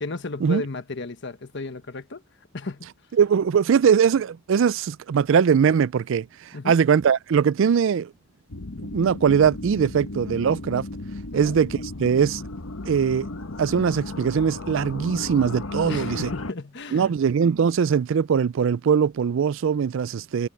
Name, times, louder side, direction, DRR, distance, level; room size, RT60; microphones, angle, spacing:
voice 1, 0.0-2.2 2.5-2.9 6.5-6.8 11.3-11.6 15.8-17.2, left 3 dB, 60° left, 1.3 m, -34 dB
voice 2, 3.2-8.1 8.9-10.9 11.3-12.4 12.9-13.3 13.6-16.3 16.9-20.5, right 7 dB, 65° right, 0.4 m, -21 dB
sound 1, 8.5-16.5, left 2 dB, 85° left, 1.2 m, -35 dB
head